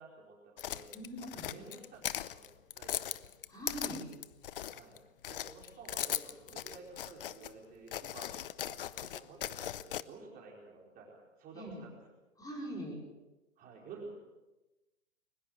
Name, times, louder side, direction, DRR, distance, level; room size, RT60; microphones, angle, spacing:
voice 1, 0.0-0.9 1.2-3.3 4.7-4.9 5.3-11.9 13.6-14.1, right 3 dB, 20° right, -2 dB, 4.6 m, -52 dB
sound 1, 0.6-5.0 5.2-7.5 7.9-10.0, left 11 dB, 45° left, 0.7 m, -39 dB
voice 2, 0.9-1.5 3.5-4.1 11.5-11.8 12.4-13.0, right 1 dB, 10° left, -2 dB, 5.0 m, -42 dB
22.5 x 20.5 x 6.6 m, 1.0 s
figure-of-eight pair, 120°, 40 cm